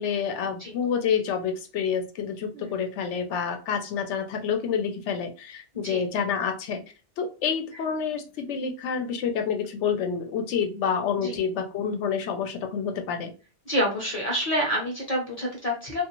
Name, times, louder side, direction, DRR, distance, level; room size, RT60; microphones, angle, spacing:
voice 1, 0.0-6.8 7.2-13.3, left 7 dB, 85° left, 5 dB, 0.9 m, -28 dB
voice 2, 13.7-16.1, equal, 40° left, -2 dB, 0.8 m, -27 dB
2.4 x 2.4 x 2.9 m, 0.34 s
omnidirectional pair, 1.2 m